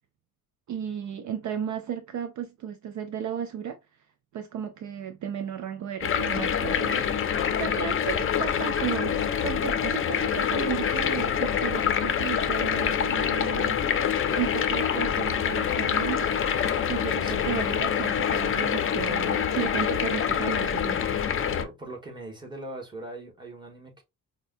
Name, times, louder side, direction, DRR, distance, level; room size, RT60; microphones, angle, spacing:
voice 1, 0.7-3.8 4.3-13.8 14.3-16.4 16.9-21.2, right 9 dB, 55° right, 0.5 m, -34 dB
sound 1, 6.0-21.6, left 8 dB, 35° left, 0.5 m, -26 dB
voice 2, 21.6-24.0, right 1 dB, 15° right, 1.4 m, -41 dB
5.2 x 2.2 x 2.5 m
cardioid pair, 115°, 35 cm